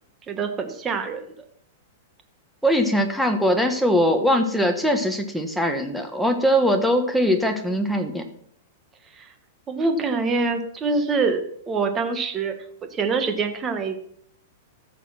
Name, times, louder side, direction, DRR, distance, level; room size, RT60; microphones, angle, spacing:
voice 1, 0.3-1.3 9.2-9.3 9.7-12.6 12.9-14.0, right 4 dB, 15° right, 7 dB, 1.5 m, -25 dB
voice 2, 2.6-8.2, equal, ahead, 5 dB, 1.4 m, -21 dB
14.5 x 6.9 x 6.0 m, 0.65 s
supercardioid pair, 160°, 0 cm